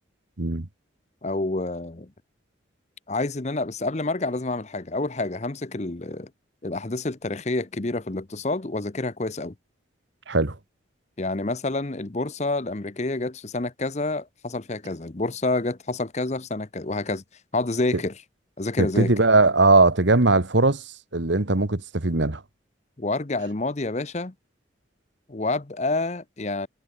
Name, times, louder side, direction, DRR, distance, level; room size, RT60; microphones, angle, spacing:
voice 1, 1.2-2.1 3.1-6.3 6.6-9.5 11.2-17.2 17.5-18.1 18.6-19.1 23.0-24.3 25.3-26.7, left 2 dB, 35° left, 0.9 m, -28 dB
voice 2, 18.8-20.8 21.1-22.4, right 3 dB, 70° right, 1.6 m, -19 dB
head